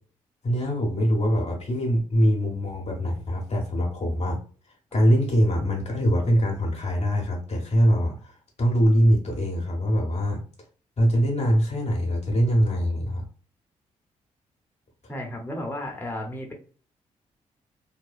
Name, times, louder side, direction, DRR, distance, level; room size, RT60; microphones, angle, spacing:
voice 1, 0.4-4.4 4.9-10.4 11.0-13.2, equal, 45° left, 0 dB, 0.9 m, -23 dB
voice 2, 15.1-16.5, left 1 dB, 15° left, 0 dB, 0.9 m, -33 dB
2.8 x 2.1 x 2.4 m, 0.42 s
hypercardioid pair, 40°, 16 cm